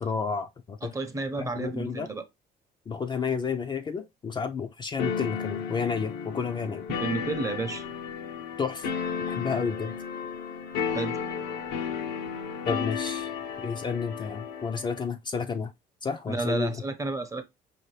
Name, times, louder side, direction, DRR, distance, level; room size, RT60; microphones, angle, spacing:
voice 1, 0.0-0.9 1.4-2.1 2.9-6.9 8.6-8.9 9.3-9.9 12.7-13.3 13.6-15.7 16.0-16.7, left 5 dB, 25° left, 0.5 m, -31 dB
voice 2, 0.8-2.2 7.0-7.8 10.9-11.2 16.3-17.4, right 3 dB, 20° right, 0.8 m, -31 dB
sound 1, 5.0-15.1, left 7 dB, 85° left, 0.9 m, -33 dB
5.0 x 2.8 x 3.1 m
cardioid pair, 110°, 17 cm